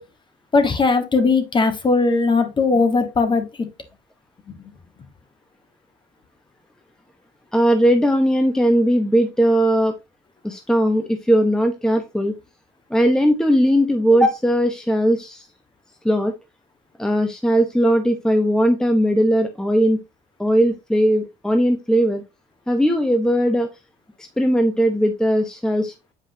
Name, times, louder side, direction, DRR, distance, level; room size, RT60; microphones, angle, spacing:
voice 1, 0.5-3.7 4.5-4.7, left 4 dB, 30° left, 8 dB, 1.3 m, -19 dB
voice 2, 7.5-9.9 10.4-12.3 12.9-15.5 16.0-16.3 17.0-20.0 20.4-22.2 22.7-23.7 24.4-25.9, equal, 5° left, 6 dB, 0.8 m, -18 dB
7.8 x 4.8 x 2.7 m, 0.24 s
cardioid pair, 110°, 17 cm